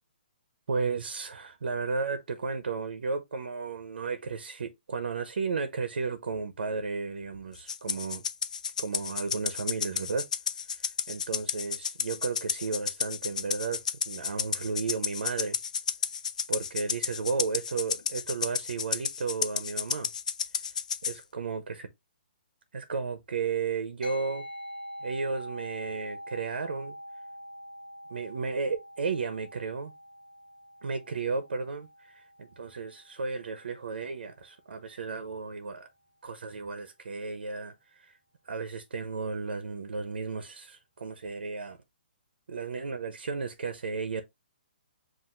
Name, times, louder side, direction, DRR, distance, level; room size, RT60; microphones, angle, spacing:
voice 1, 0.7-8.2 8.8-10.3 10.7-15.6 16.5-20.1 21.0-21.9 22.7-24.5 25.0-27.0 28.1-29.9 30.8-35.9 36.2-38.2 38.4-41.8 42.5-44.2, right 4 dB, 70° right, 0.7 m, -34 dB
Rattle (instrument), 7.7-21.2, left 7 dB, 45° left, 0.4 m, -32 dB
sound 1, 24.0-33.7, equal, 5° left, 1.8 m, -45 dB
7.5 x 2.6 x 2.5 m
hypercardioid pair, 180°, 5 cm